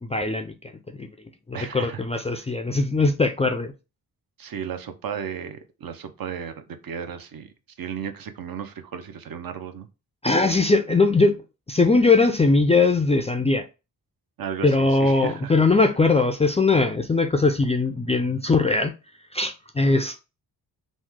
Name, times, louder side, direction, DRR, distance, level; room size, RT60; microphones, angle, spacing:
voice 1, 0.0-0.5 1.0-1.1 1.5-3.7 10.2-11.4 11.7-13.6 14.6-18.9 19.3-20.2, left 3 dB, 15° left, 0.3 m, -20 dB
voice 2, 1.5-2.0 2.3-2.4 4.4-9.9 14.4-15.5, right 7 dB, 55° right, 0.6 m, -34 dB
3.1 x 2.1 x 3.5 m
cardioid pair, 70°, 41 cm